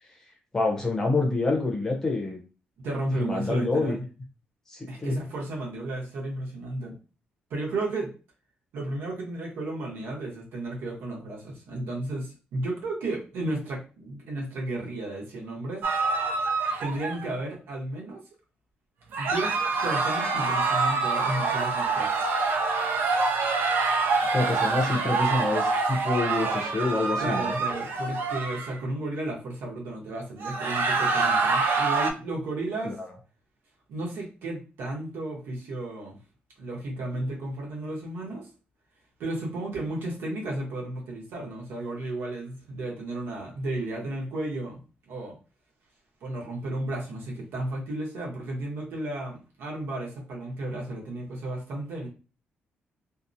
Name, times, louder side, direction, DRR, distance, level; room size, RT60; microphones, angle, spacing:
voice 1, 0.5-2.4 3.2-4.0 4.7-5.1 24.3-27.6 32.8-33.1, left 3 dB, 15° left, 1 dB, 0.6 m, -27 dB
voice 2, 2.8-4.0 4.9-7.0 7.5-8.1 8.7-15.9 16.8-18.2 19.2-22.1 27.2-33.0 33.9-36.2 36.6-38.5 39.2-44.8 45.1-45.3 46.2-52.1, right 2 dB, 90° right, -2 dB, 0.9 m, -33 dB
sound 1, 15.8-17.4 19.1-28.7 30.4-32.1, right 4 dB, 70° right, 0.4 m, -26 dB
2.7 x 2.0 x 2.5 m, 0.33 s
cardioid pair, 180°, 4 cm